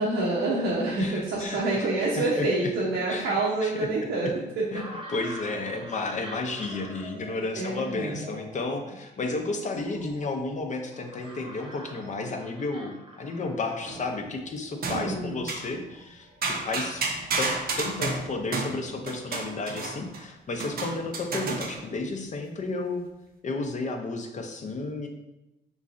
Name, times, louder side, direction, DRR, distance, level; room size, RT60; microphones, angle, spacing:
voice 1, 0.0-4.3 4.6-4.7 7.5-8.2 14.9-15.4, right 2 dB, 80° right, -6 dB, 0.8 m, -27 dB
voice 2, 1.0-2.5 3.1-3.9 4.7-17.0 17.4-17.5 17.8-23.0 23.4-25.1, left 3 dB, 40° left, 4 dB, 0.6 m, -32 dB
sound 1, 4.7-17.9, equal, 25° right, 0.9 m, -47 dB
sound 2, 13.9-14.3 14.8-15.7 16.4-20.2 20.6-21.9, right 3 dB, 50° right, 0.6 m, -32 dB
3.7 x 3.0 x 2.5 m, 0.96 s
cardioid pair, 90°, 20 cm